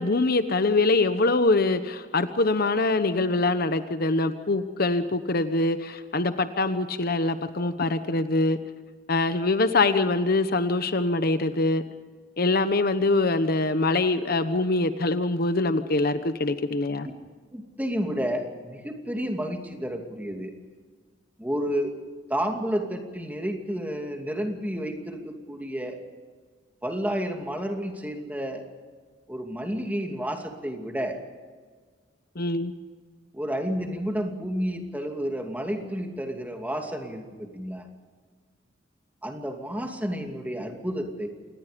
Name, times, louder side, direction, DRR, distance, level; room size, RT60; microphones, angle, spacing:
voice 1, 0.0-8.6 9.1-11.8 12.4-17.1 32.3-32.7, left 2 dB, 55° left, 10 dB, 1.1 m, -24 dB
voice 2, 17.5-20.5 21.4-21.9 22.3-26.0 26.8-28.6 29.3-31.2 33.3-37.9 39.2-41.3, equal, 10° right, 3 dB, 2.6 m, -31 dB
27.0 x 20.0 x 5.3 m, 1.5 s
head